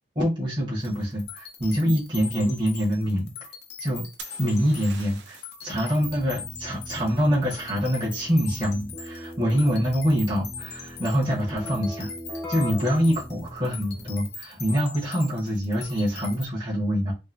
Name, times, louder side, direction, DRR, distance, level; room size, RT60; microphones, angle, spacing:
voice 1, 0.1-3.3 3.8-4.0 4.4-12.1 12.5-17.1, equal, 30° right, 0.9 m, -25 dB
sound 1, 0.8-16.5, left 5 dB, 65° left, 0.6 m, -41 dB
sound 2, 4.2-5.7 9.3-9.8, right 6 dB, 90° right, 0.5 m, -44 dB
Keyboard (musical), 5.9-14.4, left 1 dB, 15° left, 0.5 m, -40 dB
2.6 x 2.6 x 2.3 m
head